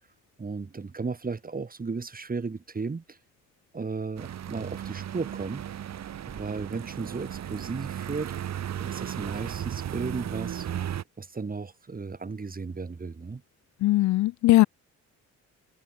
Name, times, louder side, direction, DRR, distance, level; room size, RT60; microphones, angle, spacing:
voice 1, 0.4-3.2 3.7-5.6 6.3-8.5 8.8-10.7 11.2-13.4, right 4 dB, 30° right, 6.5 m, -35 dB
sound 1, 4.2-11.0, right 10 dB, 60° right, 2.5 m, -35 dB
voice 2, 13.8-14.6, left 17 dB, 70° left, 0.5 m, -19 dB
cardioid pair, 90°, 30 cm